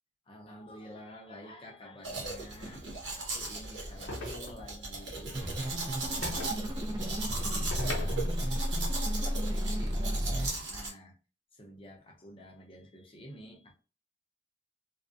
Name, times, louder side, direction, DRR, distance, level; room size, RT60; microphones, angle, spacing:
voice 1, 0.3-8.7 9.0-11.1 11.5-13.7, equal, 30° left, 0.6 m, -50 dB
Domestic sounds home sounds, 2.0-10.9, right 3 dB, 75° right, 0.8 m, -38 dB
sound 1, 4.1-4.8 6.2-6.6 7.7-8.6, left 3 dB, 85° left, 0.6 m, -40 dB
sound 2, 5.3-10.5, equal, 25° right, 0.4 m, -32 dB
2.4 x 2.1 x 2.4 m
head